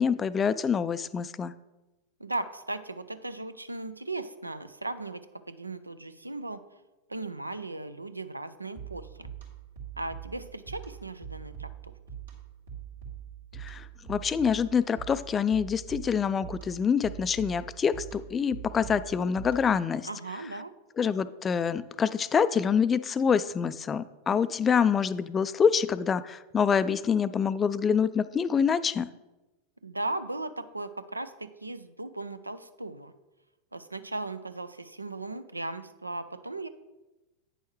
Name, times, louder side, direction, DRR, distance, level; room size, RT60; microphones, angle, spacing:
voice 1, 0.0-1.5 13.6-20.1 21.0-29.1, left 6 dB, 20° left, 15 dB, 0.3 m, -26 dB
voice 2, 2.2-6.6 7.1-9.3 10.0-11.9 20.0-20.7 29.8-33.1 33.7-36.7, right 2 dB, 85° right, 13 dB, 0.4 m, -37 dB
sound 1, 8.7-19.9, right 9 dB, 65° right, 1.8 m, -43 dB
9.1 x 6.3 x 3.1 m, 1.1 s
figure-of-eight pair, 90°, 0 cm